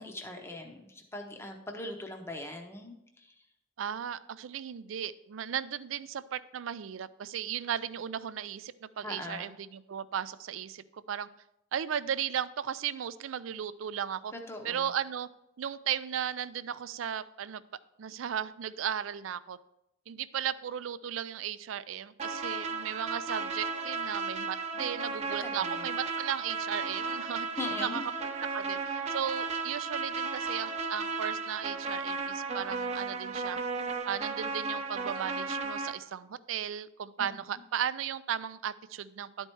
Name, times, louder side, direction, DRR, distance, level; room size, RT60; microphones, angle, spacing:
voice 1, 0.0-3.3 9.0-9.5 14.3-14.9 25.4-25.9 27.6-28.0 37.2-37.6, left 2 dB, 10° left, 3 dB, 0.8 m, -41 dB
voice 2, 3.8-11.3 11.7-14.3 14.6-15.3 15.6-17.6 18.0-19.6 20.1-27.5 27.8-28.0 28.5-33.6 34.1-39.5, right 9 dB, 80° right, 15 dB, 0.4 m, -36 dB
sound 1, 22.2-35.9, right 4 dB, 35° right, 0.7 m, -35 dB
11.5 x 4.4 x 4.5 m, 0.84 s
head